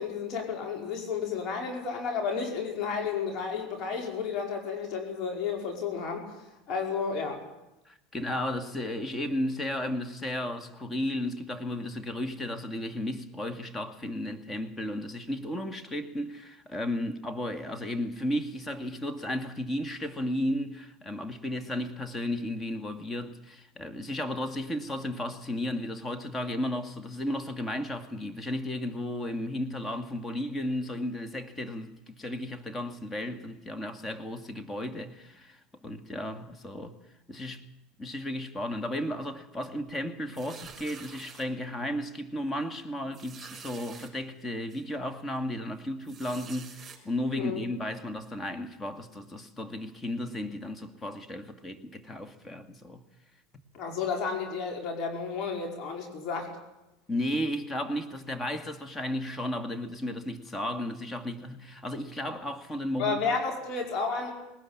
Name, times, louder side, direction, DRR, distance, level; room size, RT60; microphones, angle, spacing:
voice 1, 0.0-6.3 6.7-7.4 47.4-47.6 53.7-56.5 63.0-64.3, left 5 dB, 50° left, 5.0 m, -32 dB
voice 2, 7.9-37.0 37.3-37.6 38.0-53.0 57.1-63.2, left 1 dB, 20° left, 2.3 m, -34 dB
sound 1, 40.3-41.4 42.1-42.2 42.5-42.6 43.1-44.1 44.7-44.8 46.0-47.0, right 7 dB, 30° right, 5.8 m, -47 dB
20.0 x 19.0 x 8.9 m
hypercardioid pair, 85°, 0 cm